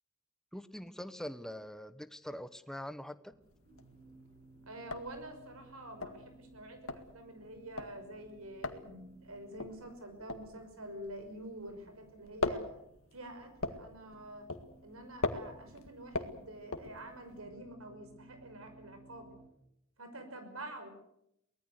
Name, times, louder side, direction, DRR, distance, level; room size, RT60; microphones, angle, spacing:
voice 1, 0.5-3.3, equal, ahead, 12 dB, 0.9 m, -43 dB
sound 1, 3.3-19.5, right 2 dB, 40° right, 7.7 m, -60 dB
sound 2, 3.5-4.1 4.4-4.5 4.7-11.8 12.1-17.4, left 3 dB, 75° left, 2.0 m, -39 dB
voice 2, 4.7-12.7 13.1-14.5 14.8-19.3 20.0-20.9, right 1 dB, 80° right, 7 dB, 5.7 m, -47 dB
23.5 x 19.0 x 8.0 m, 0.79 s
head